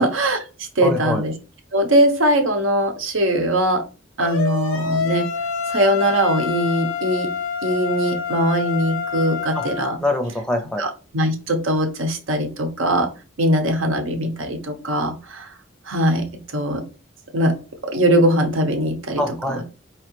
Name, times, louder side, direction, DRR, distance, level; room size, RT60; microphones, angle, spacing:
voice 1, 0.0-1.3 1.7-3.8 4.2-5.3 5.7-7.3 7.6-10.0 10.8-13.1 13.4-15.5 15.9-16.3 16.5-16.8 17.3-17.6 17.8-19.2 19.6-19.7, right 1 dB, 75° right, 5 dB, 0.9 m, -21 dB
voice 2, 0.8-1.2 9.5-9.6 10.0-10.8 19.2-19.6, left 1 dB, 5° left, 5 dB, 0.6 m, -24 dB
sound 1, 4.2-10.0, left 6 dB, 75° left, 0.6 m, -27 dB
4.5 x 3.1 x 3.0 m, 0.32 s
head